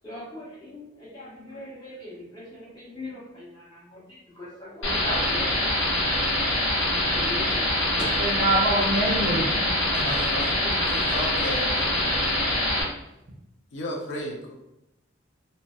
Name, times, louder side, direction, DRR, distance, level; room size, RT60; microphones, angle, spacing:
voice 1, 0.0-6.5 6.9-8.7, left 1 dB, 25° left, -8 dB, 1.0 m, -39 dB
sound 1, 4.8-12.8, left 1 dB, 90° left, 0.9 m, -24 dB
voice 2, 8.2-10.1 10.6-11.0, right 2 dB, 35° right, -2 dB, 0.5 m, -26 dB
voice 3, 9.9-10.5 10.9-12.2 13.7-14.5, left 1 dB, 65° left, 1 dB, 0.4 m, -34 dB
2.7 x 2.1 x 2.3 m, 0.86 s
head